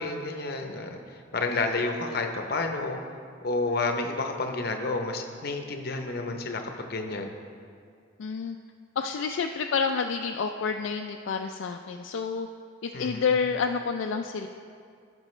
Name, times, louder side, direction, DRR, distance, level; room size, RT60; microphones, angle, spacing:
voice 1, 0.0-3.0 3.4-7.3 12.9-13.3, left 3 dB, 50° left, 4 dB, 0.7 m, -30 dB
voice 2, 8.2-8.6 9.0-12.5 12.8-14.5, left 5 dB, 70° left, 4 dB, 0.3 m, -29 dB
15.5 x 5.3 x 3.2 m, 2.2 s
head